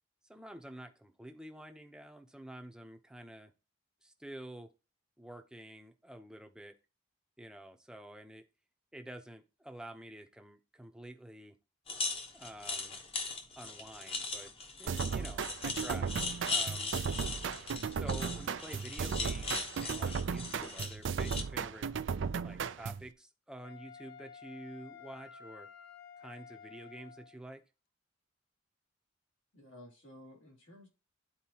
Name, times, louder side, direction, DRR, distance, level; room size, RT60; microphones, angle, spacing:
voice 1, 0.2-3.5 4.0-4.7 5.2-6.7 7.4-8.4 8.9-11.6 12.3-13.0 13.6-14.5 14.8-16.1 16.5-16.9 17.9-21.9 22.4-25.7 26.2-27.6, right 1 dB, 5° right, 0.7 m, -49 dB
sound 1, 11.9-21.4, left 3 dB, 30° left, 1.0 m, -39 dB
sound 2, 14.9-23.1, right 6 dB, 65° right, 0.4 m, -36 dB
Wind instrument woodwind instrument, 23.6-27.4, left 6 dB, 50° left, 0.7 m, -52 dB
voice 2, 29.5-30.9, left 1 dB, 80° left, 3.0 m, -54 dB
12.0 x 4.4 x 2.9 m
head